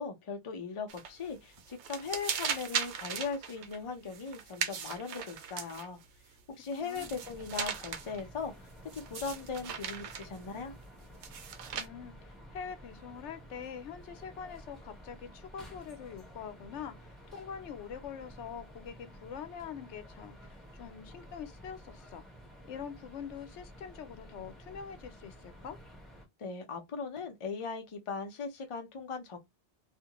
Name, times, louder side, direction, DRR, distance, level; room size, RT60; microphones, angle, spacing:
voice 1, 0.0-6.0 6.5-10.7 26.4-29.4, left 5 dB, 40° left, 0.5 m, -39 dB
sound 1, 0.9-1.3 1.6-6.1 6.6-8.2 8.9-10.4 11.2-11.9, right 7 dB, 80° right, 0.9 m, -38 dB
voice 2, 6.8-7.2 11.7-22.2 22.7-25.8, left 7 dB, 80° left, 0.9 m, -44 dB
sound 2, 6.9-26.3, equal, ahead, 0.7 m, -52 dB
2.4 x 2.1 x 2.8 m
omnidirectional pair, 1.2 m